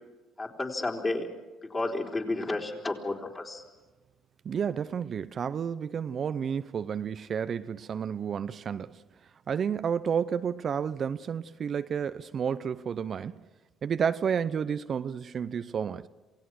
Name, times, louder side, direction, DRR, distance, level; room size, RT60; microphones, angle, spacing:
voice 1, 0.4-1.3 1.7-3.6, left 2 dB, 30° left, 4.1 m, -31 dB
voice 2, 4.4-9.0 9.5-13.4 13.8-16.1, right 7 dB, 50° right, 0.6 m, -31 dB
27.5 x 17.5 x 6.4 m
supercardioid pair, 65°, 0 cm